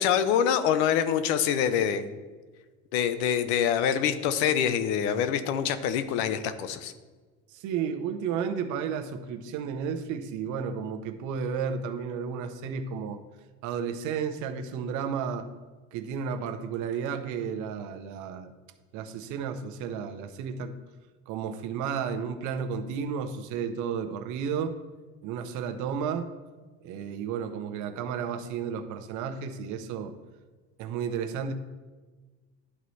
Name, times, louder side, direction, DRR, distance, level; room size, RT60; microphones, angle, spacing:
voice 1, 0.0-2.0 2.9-6.9, left 8 dB, 85° left, 12 dB, 0.6 m, -25 dB
voice 2, 7.5-13.2 13.6-15.5 15.9-18.5 18.9-20.8 21.3-24.7 25.2-26.3 26.8-30.1 30.8-31.5, right 7 dB, 65° right, 8 dB, 0.7 m, -32 dB
11.0 x 4.1 x 3.1 m, 1.3 s
supercardioid pair, 110°, 32 cm